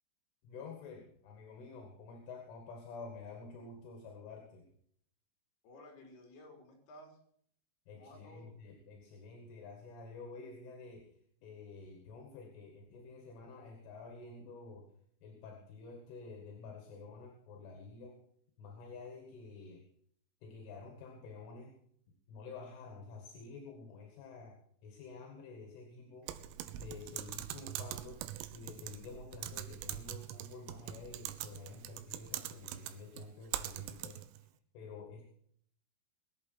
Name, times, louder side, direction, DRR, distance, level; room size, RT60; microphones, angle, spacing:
voice 1, 0.4-4.7 7.9-11.1 11.4-14.9 15.2-18.2 18.6-19.9 20.4-21.7 22.3-26.3 26.8-34.4 34.7-35.3, left 4 dB, 75° left, 3 dB, 4.3 m, -50 dB
voice 2, 5.6-7.2 7.9-8.6, left 1 dB, 55° left, 1 dB, 5.5 m, -55 dB
Typing, 26.3-34.4, right 13 dB, 90° right, 3.5 m, -43 dB
21.0 x 8.4 x 5.9 m, 0.64 s
omnidirectional pair, 5.8 m